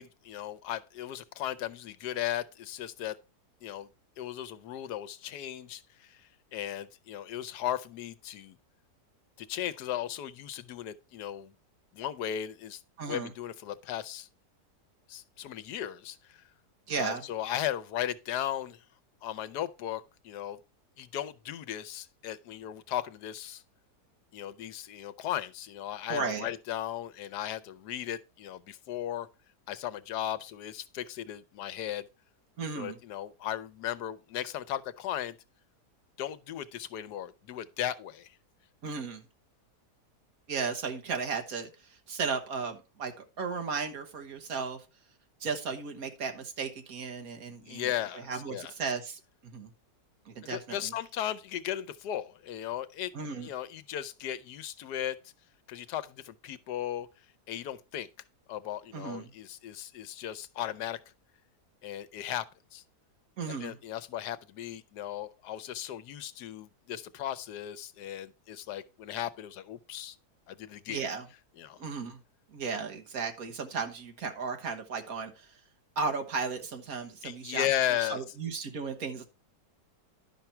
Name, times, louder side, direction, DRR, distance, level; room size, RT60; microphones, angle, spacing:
voice 1, 0.0-3.2 3.6-3.9 4.2-6.2 6.5-8.6 9.4-11.5 11.9-14.3 15.1-16.4 16.9-18.8 19.2-20.6 21.0-23.6 24.3-29.3 29.7-32.1 32.7-35.4 36.2-38.3 47.6-48.7 50.4-53.1 53.4-55.2 55.7-57.1 57.5-58.1 58.5-61.0 61.8-62.5 62.7-62.8 63.6-70.2 70.5-71.0 71.6-71.8 77.2-78.2, left 11 dB, 80° left, 1.3 m, -36 dB
voice 2, 13.0-13.3 16.9-17.3 26.1-26.5 32.6-33.0 38.8-39.2 40.5-43.1 43.4-44.8 45.4-47.9 48.1-49.7 50.3-50.9 53.1-53.5 58.9-59.3 63.4-63.8 70.9-71.3 71.8-72.2 72.5-75.5 76.0-77.7 78.0-79.2, right 5 dB, 60° right, 1.7 m, -35 dB
11.0 x 5.9 x 4.4 m
omnidirectional pair, 1.7 m